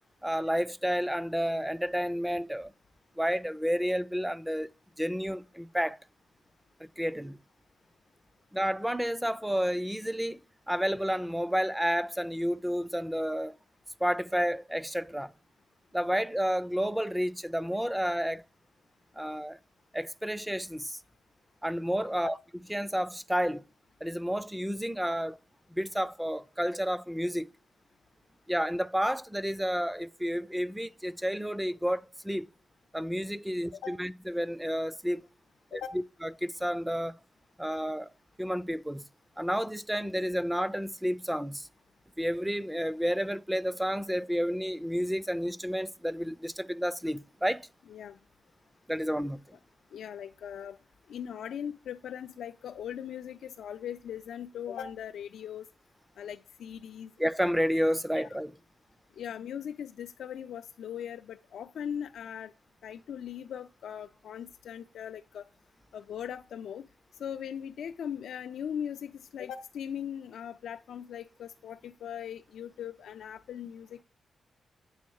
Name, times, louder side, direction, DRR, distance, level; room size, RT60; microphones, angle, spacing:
voice 1, 0.2-2.7 3.2-4.7 5.0-6.0 6.8-7.4 8.5-10.4 10.7-13.6 14.0-15.3 15.9-18.4 19.2-19.6 19.9-21.0 21.6-22.4 22.7-23.6 24.0-25.4 25.7-27.5 28.5-32.5 32.9-35.3 35.7-35.8 36.2-37.2 37.6-38.1 38.4-39.0 39.4-41.7 42.2-47.7 48.9-49.6 57.2-58.6, equal, 5° right, 0.3 m, -30 dB
voice 2, 49.9-50.8 51.1-55.7 56.2-57.1 58.2-58.3 59.2-62.5 62.8-65.5 65.9-66.9 67.2-74.0, left 9 dB, 90° left, 0.3 m, -39 dB
8.5 x 3.7 x 6.3 m
cardioid pair, 110°, 0 cm